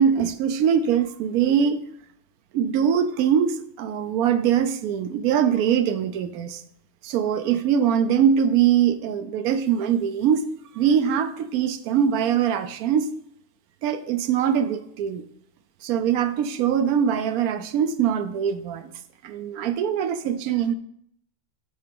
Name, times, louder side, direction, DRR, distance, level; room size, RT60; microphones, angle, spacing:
voice 1, 0.0-1.8 2.5-6.6 7.0-10.4 10.7-13.1 13.8-15.2 15.8-18.9 19.2-20.7, right 8 dB, 75° right, 11 dB, 1.0 m, -22 dB
7.6 x 3.9 x 5.2 m, 0.69 s
omnidirectional pair, 1.6 m